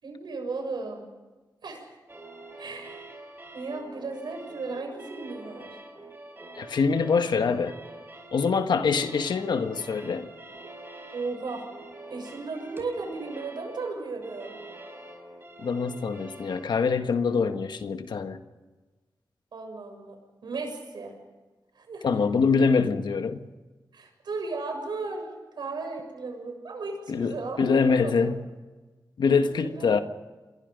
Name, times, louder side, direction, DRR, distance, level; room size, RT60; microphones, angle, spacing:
voice 1, 0.0-1.1 1.6-2.0 2.6-3.1 3.5-5.8 11.1-11.6 12.1-14.6 19.5-21.1 21.7-22.0 23.9-28.4 29.3-30.0, right 3 dB, 85° right, 7.0 m, -35 dB
sound 1, 2.1-16.6, right 2 dB, 30° right, 5.4 m, -45 dB
voice 2, 6.6-7.7 8.3-10.3 15.6-18.4 22.0-23.5 27.1-28.4 29.2-30.0, left 5 dB, 90° left, 1.5 m, -24 dB
28.0 x 22.5 x 5.3 m
wide cardioid pair, 75°, 7 cm